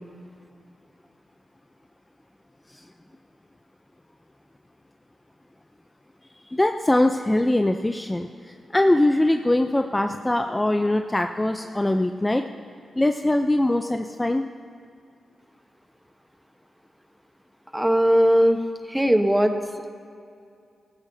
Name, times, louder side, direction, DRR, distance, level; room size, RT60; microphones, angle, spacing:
voice 1, 6.5-12.4 13.0-14.5, left 1 dB, 15° left, 6 dB, 0.5 m, -22 dB
voice 2, 17.7-18.6 18.9-19.6, equal, 5° right, 6 dB, 1.1 m, -19 dB
16.5 x 14.0 x 2.8 m, 2.4 s
cardioid pair, 55°, 0 cm